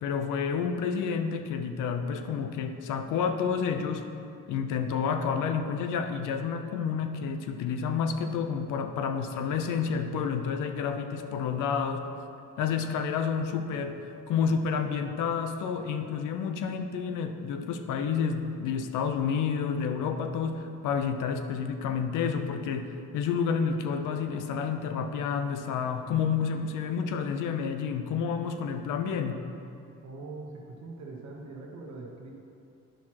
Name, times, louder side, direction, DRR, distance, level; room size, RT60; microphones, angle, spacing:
voice 1, 0.0-4.1 4.5-12.1 12.6-29.4, left 6 dB, 85° left, 7 dB, 0.6 m, -30 dB
voice 2, 30.0-32.3, right 3 dB, 65° right, -1 dB, 1.1 m, -42 dB
10.0 x 6.1 x 2.9 m, 2.5 s
cardioid pair, 90°, 30 cm